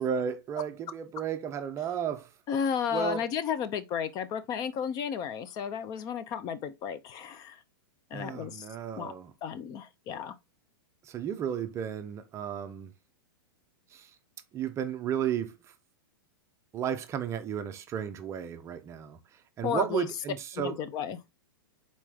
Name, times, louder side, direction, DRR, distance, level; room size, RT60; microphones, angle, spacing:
voice 1, 0.0-2.3 2.9-3.3 8.1-9.3 11.0-12.9 13.9-14.1 14.5-15.6 16.7-19.2 19.6-20.8, right 8 dB, 25° right, 0.5 m, -33 dB
voice 2, 2.5-7.6 8.1-8.7 9.0-9.1 9.4-10.3 19.6-20.1 20.5-21.2, left 7 dB, 30° left, 0.5 m, -33 dB
4.1 x 3.1 x 3.5 m
hypercardioid pair, 130°, 12 cm